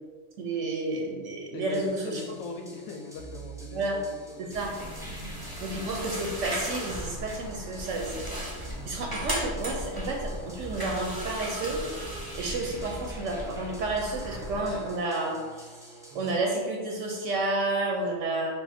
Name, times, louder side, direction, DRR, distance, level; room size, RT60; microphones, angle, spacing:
voice 1, 0.4-2.2 3.7-4.0 4.4-4.7 5.6-8.5 8.8-11.8 12.3-15.7 16.1-18.5, right 2 dB, 70° right, 0 dB, 0.9 m, -31 dB
voice 2, 1.5-4.7, left 4 dB, 90° left, 3 dB, 1.1 m, -40 dB
sound 1, 1.6-16.4, right 3 dB, 5° right, 0.4 m, -46 dB
sound 2, 4.5-14.7, equal, 20° right, 0.8 m, -36 dB
5.4 x 2.2 x 4.2 m, 1.4 s
omnidirectional pair, 1.4 m